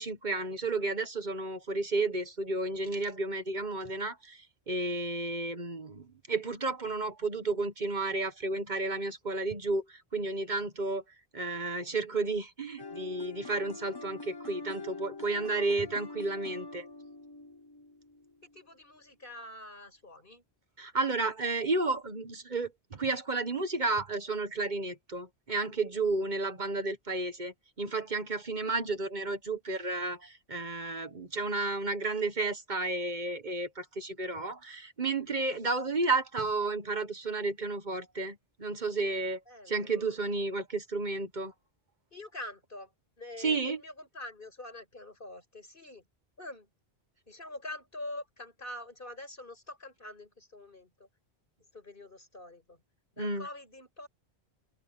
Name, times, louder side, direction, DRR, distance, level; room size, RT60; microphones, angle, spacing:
voice 1, 0.0-11.0 11.3-16.9 20.8-39.4 39.7-41.5 43.4-43.8 53.2-53.5, right 3 dB, 45° right, 1.5 m, -32 dB
sound 1, 12.8-18.6, left 3 dB, 25° left, 0.8 m, -44 dB
voice 2, 18.4-20.4 39.5-40.2 42.1-42.9 43.2-46.0 46.4-46.7 47.3-51.1 51.7-52.8 53.1-54.1, left 1 dB, 55° left, 5.8 m, -45 dB
open air
omnidirectional pair, 1.1 m